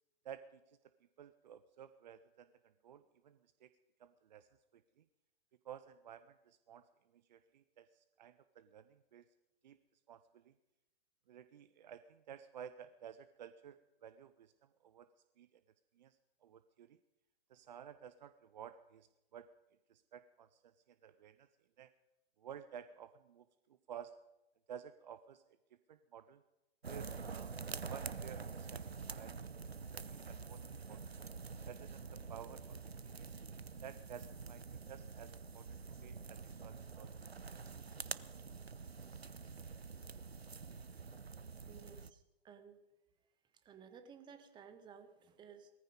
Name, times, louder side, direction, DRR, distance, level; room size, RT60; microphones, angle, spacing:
voice 1, 0.2-0.8 1.2-3.7 4.0-5.0 5.6-9.3 9.6-9.8 10.1-10.5 11.3-15.1 15.4-15.6 15.9-17.0 17.5-19.5 19.9-21.5 21.8-21.9 22.4-24.2 24.7-25.6 25.9-26.4 26.8-27.5 27.9-29.4 29.9-31.2 31.7-33.4 33.8-35.8 36.0-37.1 37.5-37.9, right 9 dB, 45° right, 13 dB, 0.7 m, -54 dB
sound 1, 26.8-42.1, right 5 dB, 85° right, 0.7 m, -47 dB
voice 2, 41.7-42.8 43.5-45.7, right 7 dB, 15° right, 9 dB, 1.4 m, -57 dB
18.5 x 14.5 x 5.3 m, 0.97 s
figure-of-eight pair, 115°, 30 cm